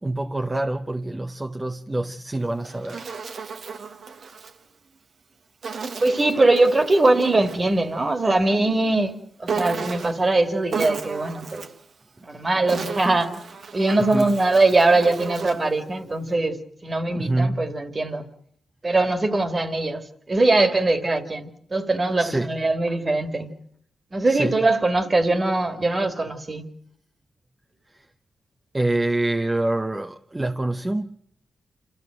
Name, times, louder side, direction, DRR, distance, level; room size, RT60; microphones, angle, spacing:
voice 1, 0.0-3.1 12.5-12.6 13.0-13.2 14.0-14.3 17.1-17.7 22.2-22.6 24.3-24.6 27.9-28.1 28.7-31.2, right 2 dB, 25° right, 0.8 m, -26 dB
Insect, 2.4-4.6 5.6-7.7 9.5-10.3 10.7-11.8 12.5-15.7, right 5 dB, 65° right, 1.2 m, -34 dB
voice 2, 6.0-9.1 9.4-11.6 12.3-13.3 13.7-16.6 16.8-18.3 18.8-23.5 24.1-26.7, right 2 dB, 40° right, 2.2 m, -21 dB
27.0 x 14.0 x 7.8 m
supercardioid pair, 50°, 0 cm